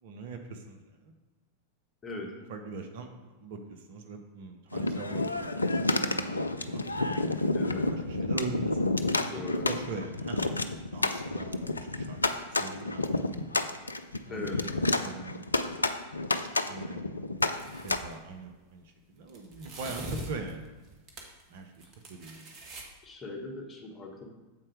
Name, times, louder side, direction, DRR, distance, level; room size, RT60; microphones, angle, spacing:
voice 1, 0.0-1.1 2.5-11.6 11.9-13.4 14.2-15.5 16.3-17.1 17.8-20.7 21.5-21.8 22.1-22.5, right 4 dB, 55° right, 5 dB, 0.8 m, -42 dB
voice 2, 2.0-2.3 7.5-8.1 9.3-9.7 14.3-14.6 23.0-24.3, left 2 dB, 20° left, 0 dB, 1.4 m, -39 dB
sound 1, 4.7-18.0, left 2 dB, 80° left, 0.4 m, -30 dB
sound 2, 17.4-18.1 19.3-21.4 21.7-22.8, right 1 dB, 35° right, 1.3 m, -42 dB
7.6 x 4.3 x 4.8 m, 1.2 s
figure-of-eight pair, 90°, 0 cm